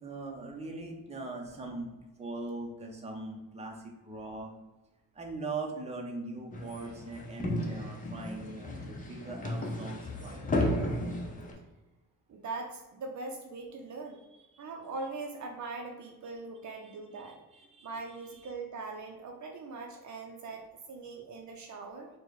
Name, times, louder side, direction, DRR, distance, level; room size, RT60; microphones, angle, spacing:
voice 1, 0.0-1.9 2.2-4.5 5.1-10.8 14.5-14.6 16.6-18.5, right 2 dB, 20° right, 0 dB, 0.8 m, -41 dB
sound 1, 6.5-11.5, left 1 dB, 25° left, 0.8 m, -34 dB
voice 2, 12.3-14.2 14.6-17.4 17.8-22.1, right 3 dB, 55° right, 2 dB, 0.7 m, -41 dB
4.4 x 2.3 x 4.6 m, 1.1 s
cardioid pair, 120°, 34 cm